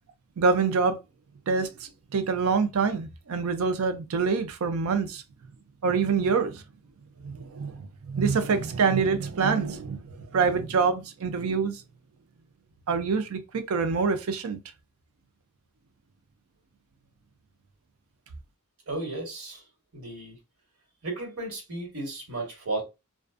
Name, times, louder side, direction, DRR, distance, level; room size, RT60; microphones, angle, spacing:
voice 1, 0.4-1.0 1.5-5.2 5.8-6.6 7.2-11.8 12.9-14.6, right 5 dB, 70° right, 0.5 m, -26 dB
voice 2, 18.9-19.7 19.9-20.4 21.0-22.8, right 2 dB, 90° right, 1.3 m, -34 dB
2.4 x 2.3 x 2.4 m
head